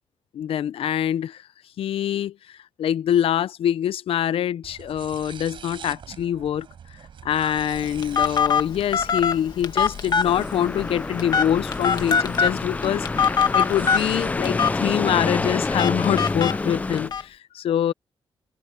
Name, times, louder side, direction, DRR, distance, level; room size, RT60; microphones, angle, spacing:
voice 1, 0.3-1.4 1.8-6.7 7.2-17.9, left 10 dB, 80° left, 0.6 m, -25 dB
sound 1, 4.6-14.4, right 8 dB, 65° right, 5.1 m, -45 dB
Telephone, 7.4-17.2, left 6 dB, 45° left, 1.4 m, -25 dB
sound 2, 10.2-17.1, left 3 dB, 15° left, 0.4 m, -27 dB
wide cardioid pair, 155°, 9 cm